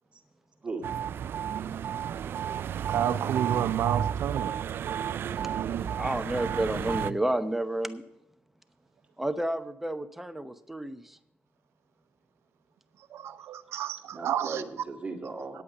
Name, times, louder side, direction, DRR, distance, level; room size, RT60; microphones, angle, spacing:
sound 1, 0.8-7.1, right 9 dB, 60° right, 0.4 m, -32 dB
voice 1, 2.9-4.6 5.5-6.0 13.1-14.6, right 10 dB, 80° right, 0.7 m, -31 dB
voice 2, 5.3-5.7 14.1-15.6, right 3 dB, 30° right, 2.1 m, -38 dB
voice 3, 5.9-8.0 9.2-11.2, right 1 dB, 5° right, 0.8 m, -30 dB
9.7 x 8.5 x 6.6 m
cardioid pair, 100°, 4 cm